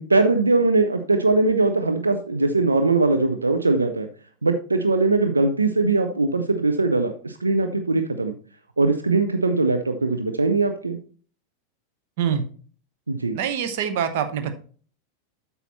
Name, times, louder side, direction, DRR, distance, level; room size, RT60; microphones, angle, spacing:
voice 1, 0.0-4.1 4.4-8.3 8.8-11.0 13.1-13.4, right 3 dB, 80° right, 7 dB, 0.7 m, -21 dB
voice 2, 13.3-14.5, right 8 dB, 50° right, 9 dB, 0.9 m, -25 dB
8.1 x 5.6 x 4.3 m, 0.42 s
figure-of-eight pair, 90°, 0 cm